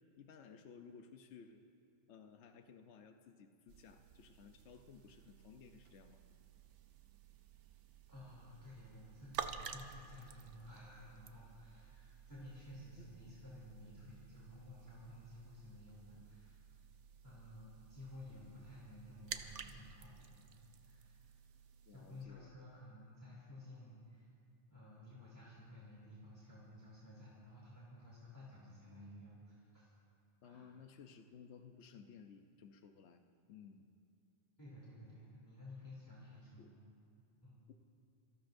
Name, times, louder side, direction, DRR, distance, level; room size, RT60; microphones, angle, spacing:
voice 1, 0.2-1.6 2.1-6.2 13.0-13.1 21.9-22.8 30.4-33.9 36.6-36.7 37.7-37.8, left 6 dB, 70° left, 5 dB, 1.0 m, -57 dB
sound 1, 3.7-22.3, right 7 dB, 75° right, 1.0 m, -52 dB
voice 2, 8.1-16.6 17.2-21.4 21.9-24.3 24.7-29.9 30.4-30.7 34.6-36.7 37.4-37.6, left 1 dB, 15° left, -8 dB, 2.9 m, -54 dB
26.0 x 18.0 x 2.6 m, 2.5 s
omnidirectional pair, 1.2 m